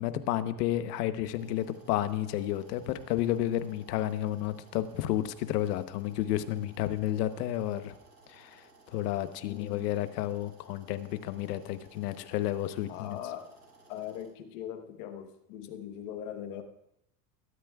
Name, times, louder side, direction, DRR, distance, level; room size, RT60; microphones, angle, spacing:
voice 1, 0.0-7.9 8.3-13.2, left 13 dB, 90° left, 11 dB, 1.1 m, -31 dB
sound 1, 1.3-14.2, right 3 dB, 20° right, 6.0 m, -59 dB
voice 2, 9.4-9.8 12.9-13.5 13.9-16.6, left 10 dB, 55° left, 6 dB, 1.2 m, -40 dB
21.5 x 12.5 x 2.4 m, 0.81 s
cardioid pair, 175°, 46 cm